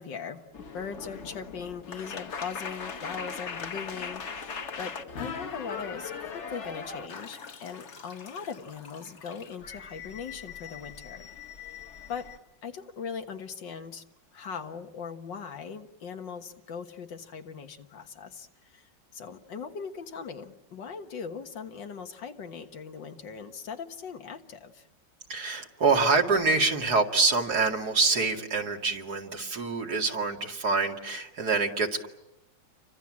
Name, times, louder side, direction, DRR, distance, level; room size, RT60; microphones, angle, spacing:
voice 1, 0.0-11.2 12.1-12.3 12.6-14.0 14.3-24.9, left 6 dB, 90° left, 6 dB, 2.2 m, -40 dB
sound 1, 0.5-12.4, left 5 dB, 45° left, 1.3 m, -40 dB
voice 2, 25.3-32.1, right 4 dB, 60° right, 2 dB, 2.8 m, -26 dB
29.5 x 25.0 x 7.5 m, 0.89 s
omnidirectional pair, 1.9 m